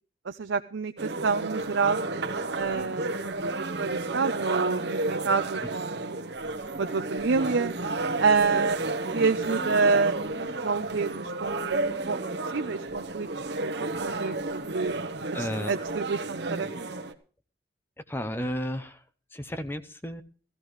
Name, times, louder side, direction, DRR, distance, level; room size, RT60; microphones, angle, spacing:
voice 1, 0.3-2.0 2.6-6.3 6.8-7.7 8.2-8.8 9.1-11.8 12.1-12.2 12.5-13.3 13.6-14.9 15.4-16.9, right 4 dB, 85° right, 8 dB, 0.6 m, -28 dB
sound 1, 1.0-17.1, right 2 dB, 65° right, 1.1 m, -32 dB
voice 2, 15.3-15.7 18.1-19.0 19.3-20.2, equal, 10° left, 11 dB, 0.7 m, -33 dB
16.0 x 14.0 x 3.1 m, 0.40 s
head